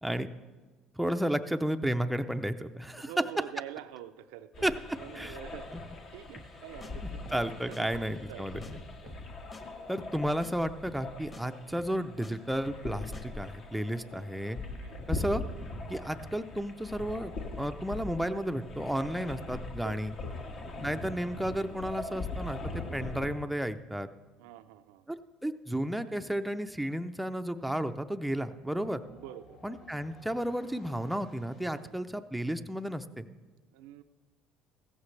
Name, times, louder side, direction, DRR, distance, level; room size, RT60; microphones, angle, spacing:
voice 1, 1.0-3.1 4.6-4.7 5.1-5.3 5.7-5.8 7.0-8.6 9.9-14.6 15.1-15.4 15.9-20.1 20.8-24.1 25.1-29.0 29.6-33.3, equal, 5° right, 7 dB, 0.5 m, -33 dB
voice 2, 3.0-4.7 5.0-5.7 6.1-7.2 7.7-7.9 8.3-9.2 14.6-15.0 16.0-16.1 19.7-20.8 22.8-23.0 24.4-25.1 28.4-28.5 29.1-29.8 31.8-32.0 33.7-34.0, right 12 dB, 90° right, 11 dB, 0.6 m, -47 dB
sound 1, 4.5-23.3, left 2 dB, 55° left, 1.8 m, -41 dB
sound 2, 6.4-6.6 6.8-6.9 7.3-7.5 7.7-7.8 8.2-8.4 8.6-8.7 9.1-9.3 9.5-9.6 10.0-10.2 10.4-10.5 10.9-11.1 11.3-11.4 11.8-12.3 12.7-12.9 13.1-13.2, left 2 dB, 25° left, 1.5 m, -49 dB
sound 3, 26.7-32.0, left 2 dB, 75° left, 2.6 m, -58 dB
16.0 x 14.5 x 3.3 m, 1.3 s
supercardioid pair, 105°, 0 cm